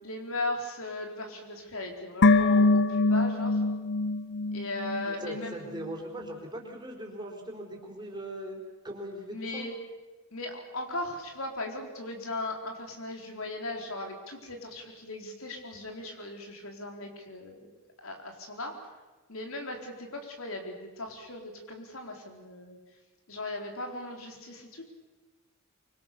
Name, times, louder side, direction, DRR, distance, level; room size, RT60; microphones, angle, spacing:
voice 1, 0.0-3.6 4.5-5.7 9.3-9.8 10.3-17.7 18.0-18.7 19.3-22.8 23.3-24.8, left 2 dB, 70° left, 3 dB, 4.2 m, -38 dB
sound 1, 2.2-5.5 5.8-5.9, left 3 dB, 55° left, 0.8 m, -24 dB
voice 2, 5.1-9.6, right 1 dB, 20° right, 0 dB, 4.5 m, -40 dB
25.0 x 24.0 x 6.9 m, 1.1 s
head